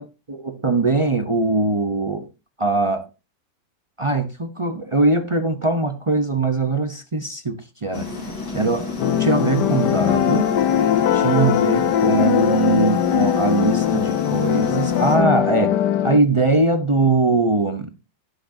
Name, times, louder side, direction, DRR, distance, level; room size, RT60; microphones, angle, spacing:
voice 1, 0.3-2.3 2.6-3.1 4.0-8.1 8.5-10.5 11.1-15.8 16.0-17.9, right 3 dB, 45° right, 0.4 m, -21 dB
sound 1, 7.9-15.2, left 2 dB, 85° left, 3.5 m, -31 dB
sound 2, 9.0-16.2, left 10 dB, 65° left, 1.2 m, -20 dB
16.5 x 6.2 x 2.7 m
omnidirectional pair, 2.1 m